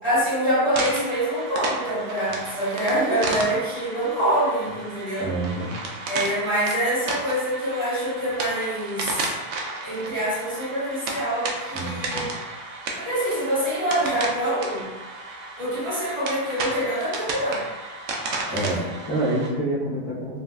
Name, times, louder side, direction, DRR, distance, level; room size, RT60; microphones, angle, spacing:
voice 1, 0.0-5.3 6.0-9.3 9.8-12.3 12.9-14.9 15.6-17.6, right 1 dB, 25° right, -13 dB, 1.3 m, -25 dB
sound 1, 0.7-19.5, right 3 dB, 75° right, 0.7 m, -33 dB
voice 2, 5.2-5.7 11.7-12.3 18.5-20.4, right 1 dB, 20° left, -13 dB, 0.9 m, -27 dB
4.0 x 2.4 x 2.2 m, 1.2 s
omnidirectional pair, 1.8 m